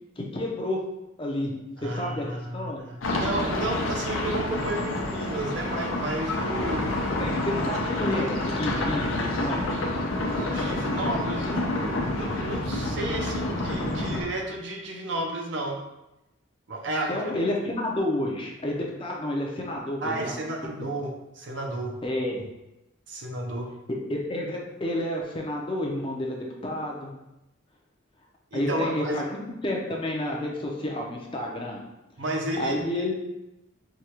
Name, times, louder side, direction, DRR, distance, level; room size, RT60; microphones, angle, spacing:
voice 1, 0.2-0.9 1.2-1.5 1.8-2.3 2.5-2.8 7.2-9.6 17.1-20.4 22.0-22.4 24.1-27.1 28.5-31.8 32.6-33.1, left 1 dB, 25° left, -1 dB, 0.5 m, -30 dB
voice 2, 1.8-6.8 10.3-15.8 16.7-17.3 20.0-22.0 23.1-23.7 28.5-29.2 32.2-33.1, right 2 dB, 60° right, 1 dB, 0.6 m, -32 dB
sound 1, 3.0-14.2, left 2 dB, 80° left, 0.6 m, -28 dB
4.7 x 2.2 x 2.9 m, 0.92 s
head